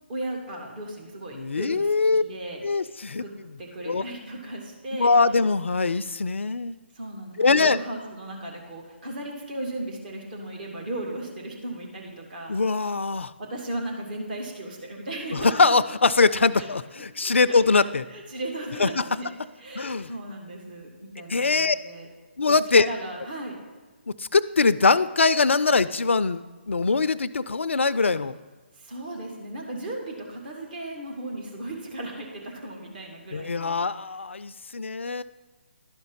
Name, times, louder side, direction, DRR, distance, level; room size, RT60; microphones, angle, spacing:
voice 1, 0.1-2.9 3.2-3.3 3.6-5.1 6.9-12.5 13.4-15.5 16.5-16.7 17.2-19.3 19.6-22.1 22.5-23.6 28.7-34.0, right 1 dB, 45° right, 0 dB, 2.1 m, -36 dB
voice 2, 1.3-2.2 2.6-3.2 3.8-4.0 5.0-6.8 7.4-7.8 12.5-13.3 15.3-18.1 18.8-19.0 19.8-20.1 21.3-21.8 22.4-22.9 24.2-28.3 33.3-35.2, left 4 dB, 80° left, 14 dB, 0.4 m, -22 dB
11.5 x 5.2 x 5.5 m, 1.3 s
figure-of-eight pair, 145°, 6 cm